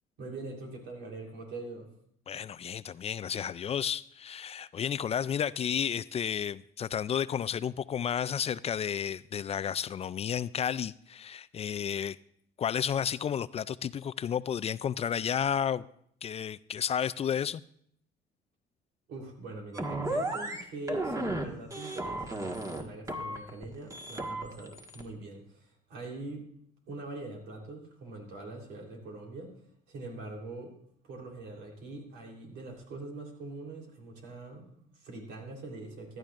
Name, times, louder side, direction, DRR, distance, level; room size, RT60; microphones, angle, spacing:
voice 1, 0.2-1.9 19.1-26.5 26.9-29.5 29.9-30.7 31.0-36.2, right 2 dB, 80° right, 3.5 m, -43 dB
voice 2, 2.3-12.2 12.6-15.8 16.2-17.6, left 8 dB, 35° left, 0.3 m, -32 dB
sound 1, 19.7-20.6 20.9-21.4 21.7-22.8 23.1-23.6 23.9-25.0, right 1 dB, 20° right, 1.6 m, -34 dB
15.5 x 12.0 x 2.5 m
cardioid pair, 90°, 18 cm